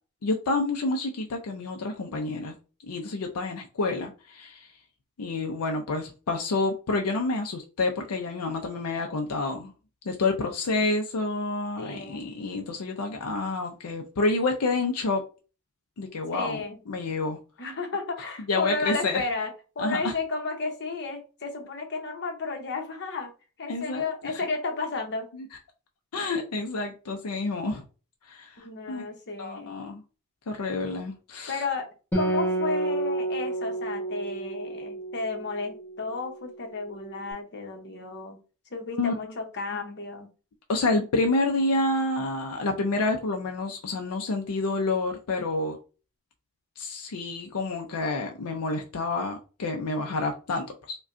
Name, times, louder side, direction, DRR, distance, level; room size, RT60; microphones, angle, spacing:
voice 1, 0.2-2.5 2.8-4.7 5.2-9.7 10.1-15.2 16.0-17.4 18.5-19.2 19.8-20.1 23.7-24.1 25.3-25.5 26.1-27.8 28.3-29.0 29.4-30.0 30.5-31.6 39.0-39.1 40.7-45.8 46.8-51.0, left 3 dB, 80° left, 0.5 m, -28 dB
voice 2, 11.8-12.3 16.3-16.8 17.6-23.3 23.6-25.3 28.6-29.8 31.5-31.9 32.1-38.4 38.7-40.3, left 3 dB, 50° left, 0.9 m, -33 dB
Acoustic guitar, 32.1-35.8, right 2 dB, 10° left, 1.3 m, -29 dB
4.8 x 2.3 x 2.6 m
head